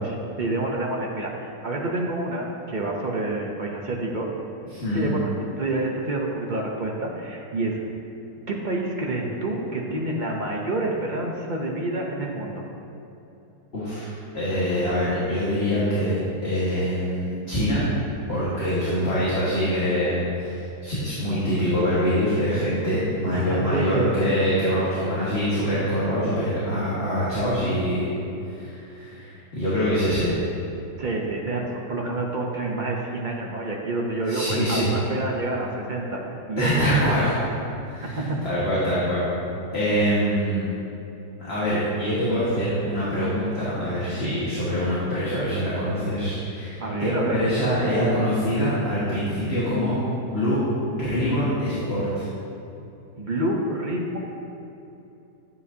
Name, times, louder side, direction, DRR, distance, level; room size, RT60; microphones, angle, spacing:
voice 1, 0.4-4.3 4.9-7.8 8.5-12.7 18.6-18.9 23.3-24.1 31.0-36.2 36.5-37.5 38.0-38.4 46.8-47.4 53.2-54.2, right 2 dB, 55° right, -1 dB, 0.5 m, -28 dB
voice 2, 4.7-5.1 13.7-17.9 18.3-28.1 28.5-30.4 34.3-34.9 36.6-37.4 37.8-39.3 39.7-40.7 41.4-49.9 50.2-50.6 50.9-52.3, equal, 35° left, -10 dB, 1.8 m, -24 dB
11.0 x 8.3 x 2.7 m, 2.9 s
omnidirectional pair, 1.9 m